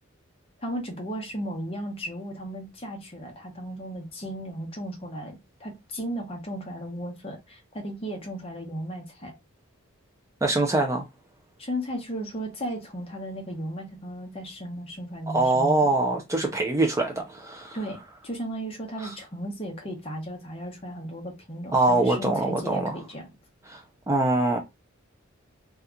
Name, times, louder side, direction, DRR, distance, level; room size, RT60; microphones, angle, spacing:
voice 1, 0.6-9.3 11.6-15.9 17.7-23.3, equal, 25° left, 0.8 m, -35 dB
voice 2, 10.4-11.0 15.3-17.8 19.0-19.2 21.7-23.0 23.7-24.6, right 2 dB, 15° right, 0.4 m, -24 dB
2.7 x 2.3 x 3.5 m
head